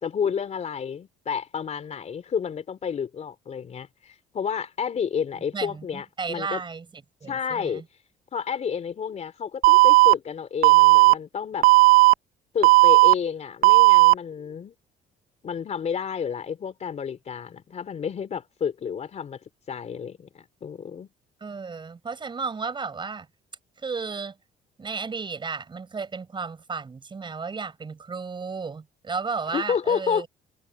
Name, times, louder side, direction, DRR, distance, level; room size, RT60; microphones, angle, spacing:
voice 1, 0.0-6.6 7.3-7.8 8.3-11.7 12.5-14.7 15.4-19.4 19.7-21.1 29.5-30.3, left 7 dB, 40° left, 3.4 m, -30 dB
voice 2, 5.5-7.8 21.4-23.3 23.8-24.3 24.8-30.3, right 5 dB, 30° right, 7.5 m, -33 dB
Alarm, 9.6-10.1 10.6-11.1 11.6-12.1 12.6-13.1 13.6-14.1, right 23 dB, 65° right, 1.0 m, -14 dB
cardioid pair, 110°, 17 cm